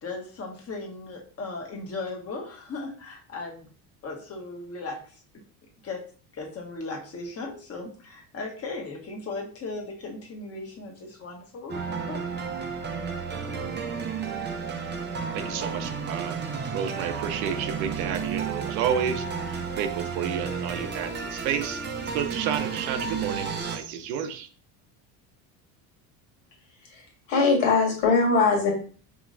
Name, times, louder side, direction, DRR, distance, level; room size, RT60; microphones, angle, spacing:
voice 1, 0.0-3.7 4.0-5.2 5.8-6.0 6.3-12.2, left 3 dB, 30° left, 1 dB, 1.2 m, -37 dB
sound 1, 11.7-23.8, right 5 dB, 25° right, 0.5 m, -32 dB
voice 2, 15.3-16.4 16.7-21.8 22.1-24.5, right 8 dB, 80° right, 8 dB, 0.8 m, -31 dB
voice 3, 26.8-28.7, left 4 dB, 85° left, 0 dB, 1.8 m, -22 dB
5.0 x 3.1 x 2.6 m, 0.41 s
supercardioid pair, 115°, 46 cm